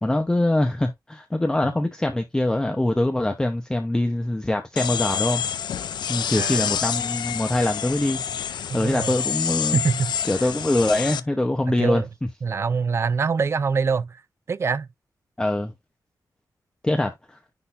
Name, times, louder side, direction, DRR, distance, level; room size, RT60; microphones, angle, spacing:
voice 1, 0.0-5.4 6.1-8.2 8.5-9.8 10.3-12.0 15.4-15.7 16.8-17.4, left 1 dB, 10° left, 0.8 m, -23 dB
sound 1, 4.8-11.2, left 8 dB, 90° left, 0.5 m, -28 dB
voice 2, 6.3-6.7 8.7-9.1 9.7-10.1 11.8-12.1 12.4-14.2 14.5-14.9, right 5 dB, 35° right, 0.4 m, -24 dB
10.0 x 3.8 x 2.6 m
wide cardioid pair, 175°, 7 cm